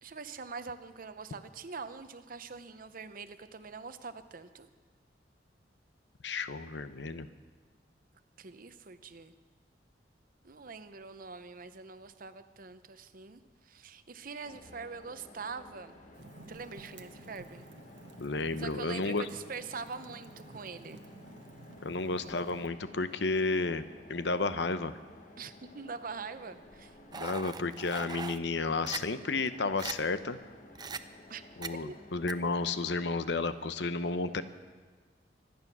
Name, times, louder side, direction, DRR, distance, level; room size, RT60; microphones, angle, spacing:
voice 1, 0.0-4.7 8.4-9.3 10.4-16.0 16.5-17.6 18.6-21.0 25.4-27.0 31.3-31.4 31.8-31.9, right 4 dB, 50° right, 11 dB, 0.8 m, -44 dB
voice 2, 6.2-7.3 18.2-19.3 21.8-23.8 24.1-24.9 27.1-30.4 31.6-34.4, left 3 dB, 70° left, 12 dB, 0.8 m, -32 dB
sound 1, 14.4-33.2, left 1 dB, 45° left, 1.6 m, -55 dB
Fire, 16.1-22.7, right 2 dB, 85° right, 1.1 m, -53 dB
sound 2, 27.1-28.4 28.9-29.0 29.5-29.6 29.8-29.9 30.7-31.0 31.6-31.7 32.3-32.4, right 5 dB, 25° right, 0.5 m, -39 dB
24.5 x 9.6 x 6.1 m, 1.5 s
head